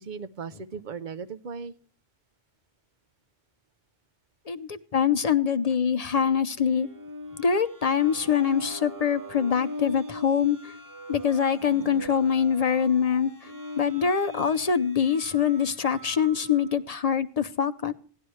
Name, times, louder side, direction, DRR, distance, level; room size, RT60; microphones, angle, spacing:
voice 1, 0.0-1.7 6.1-6.3 12.9-13.6, right 5 dB, 50° right, 12 dB, 0.7 m, -39 dB
voice 2, 4.5-6.9 7.4-10.7 11.1-13.5 13.8-17.9, left 7 dB, 40° left, 11 dB, 0.6 m, -24 dB
sound 1, 6.5-16.8, left 1 dB, 20° right, 0.9 m, -42 dB
17.0 x 11.5 x 3.1 m, 0.42 s
omnidirectional pair, 1.1 m